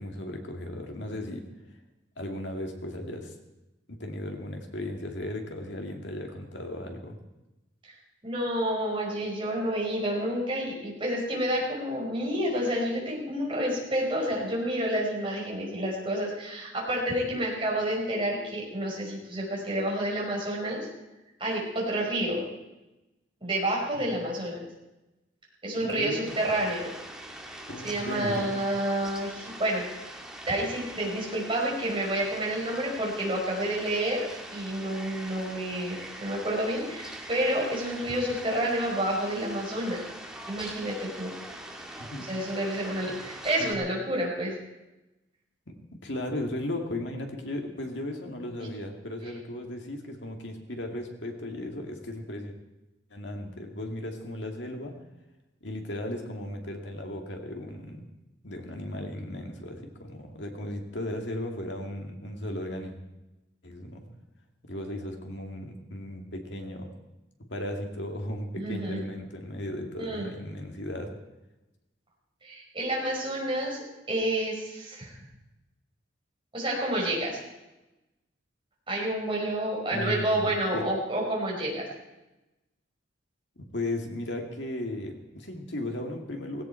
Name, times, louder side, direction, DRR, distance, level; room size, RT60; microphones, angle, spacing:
voice 1, 0.0-1.4 2.2-3.3 3.9-7.2 23.9-24.1 25.8-26.3 27.7-28.5 42.0-42.3 43.0-43.1 43.6-43.7 45.7-45.8 46.0-52.5 53.1-55.0 55.6-58.1 58.4-62.9 63.6-64.1 64.6-66.9 67.5-71.1 79.9-80.9 83.6-86.6, left 1 dB, 65° left, 2 dB, 2.3 m, -36 dB
voice 2, 8.2-20.9 21.4-22.4 23.4-24.6 25.6-26.9 27.8-30.1 30.5-40.0 40.5-41.3 42.2-44.6 68.5-69.1 70.0-70.3 72.4-75.2 76.5-77.4 78.9-81.9, right 1 dB, 25° right, -3 dB, 5.2 m, -29 dB
Fowl, 26.3-43.7, right 1 dB, 5° right, 1.7 m, -43 dB
17.0 x 17.0 x 4.5 m, 1.0 s
head